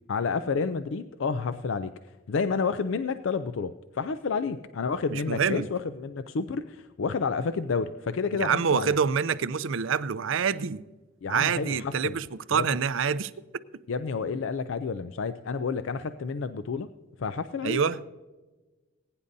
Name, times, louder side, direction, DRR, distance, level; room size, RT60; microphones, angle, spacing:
voice 1, 0.1-1.9 2.3-8.9 11.2-12.2 12.5-12.8 13.9-16.9 17.2-17.8, left 5 dB, 65° left, 0.4 m, -30 dB
voice 2, 5.1-5.7 8.3-10.8 11.3-13.3 17.6-18.0, right 6 dB, 70° right, 0.5 m, -26 dB
20.5 x 9.8 x 2.7 m
head